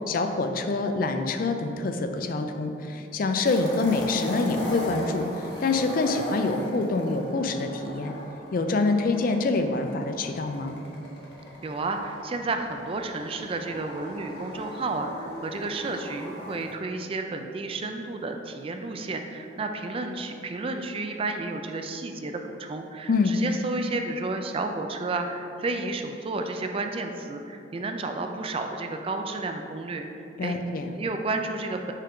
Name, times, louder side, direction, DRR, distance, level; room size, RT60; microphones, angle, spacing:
voice 1, 0.1-8.1 8.5-10.8 23.1-23.4 30.4-30.9, left 3 dB, 50° left, 6 dB, 0.4 m, -26 dB
sound 1, 3.4-16.7, left 1 dB, 70° left, 1.1 m, -38 dB
voice 2, 11.6-30.6 31.0-31.9, right 3 dB, 30° right, 5 dB, 0.3 m, -31 dB
5.5 x 5.0 x 3.6 m, 2.7 s
head